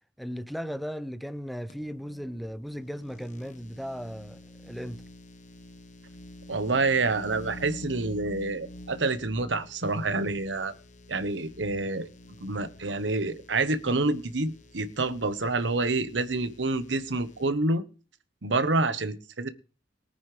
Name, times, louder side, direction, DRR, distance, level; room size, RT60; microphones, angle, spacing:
voice 1, 0.2-5.0, equal, ahead, 0.6 m, -36 dB
sound 1, 1.7-17.5, equal, 45° left, 1.2 m, -48 dB
voice 2, 6.5-10.7 11.1-12.1 12.4-17.8 18.4-19.5, right 3 dB, 85° right, 1.1 m, -27 dB
22.0 x 9.4 x 3.3 m
head